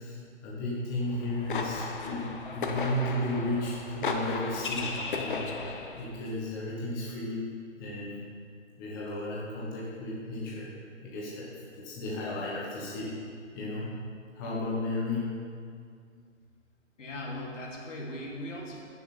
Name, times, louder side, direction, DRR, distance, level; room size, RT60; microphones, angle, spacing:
voice 1, 0.0-5.5 5.9-7.5 7.8-8.2 8.8-10.7 11.0-13.1 13.5-13.9 14.3-15.3, left 1 dB, 15° left, -6 dB, 1.2 m, -34 dB
sound 1, 1.1-6.1, left 4 dB, 40° left, 0.9 m, -35 dB
voice 2, 17.0-18.8, left 1 dB, 70° left, -3 dB, 3.1 m, -38 dB
14.5 x 7.1 x 4.4 m, 2.2 s
hypercardioid pair, 160°, 39 cm